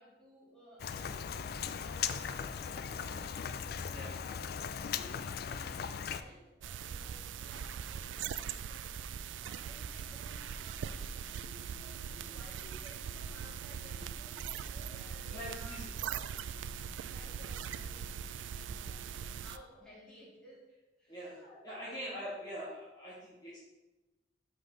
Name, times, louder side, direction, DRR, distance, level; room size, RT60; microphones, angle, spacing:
voice 1, 0.0-3.4 3.8-4.4 4.8-8.9 9.2-16.3 16.7-18.1 18.5-22.0, equal, 5° left, -8 dB, 2.6 m, -57 dB
Rain, 0.8-6.2, left 7 dB, 55° left, 0.4 m, -38 dB
voice 2, 2.9-3.2 3.9-4.1 15.3-15.9 21.1-21.4 21.6-23.6, equal, 20° left, -8 dB, 1.5 m, -44 dB
sound 1, 6.6-19.6, right 7 dB, 85° right, 0.3 m, -41 dB
5.6 x 5.1 x 5.7 m, 1.1 s
head